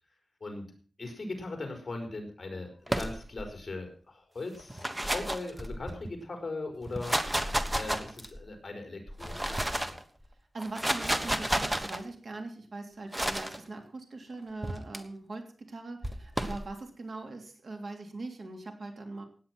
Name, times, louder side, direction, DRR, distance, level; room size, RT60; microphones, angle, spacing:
voice 1, 1.0-10.0, left 2 dB, 40° left, 4 dB, 4.4 m, -39 dB
sound 1, 2.9-3.5 4.6-6.1 6.8-8.4 9.1-10.0 10.6-12.0 13.1-13.6 14.6-15.0 16.0-16.6, right 1 dB, 10° right, 1.3 m, -31 dB
voice 2, 10.5-19.2, right 2 dB, 60° right, 4 dB, 3.1 m, -41 dB
17.0 x 9.5 x 6.0 m, 0.42 s
wide cardioid pair, 145°, 0 cm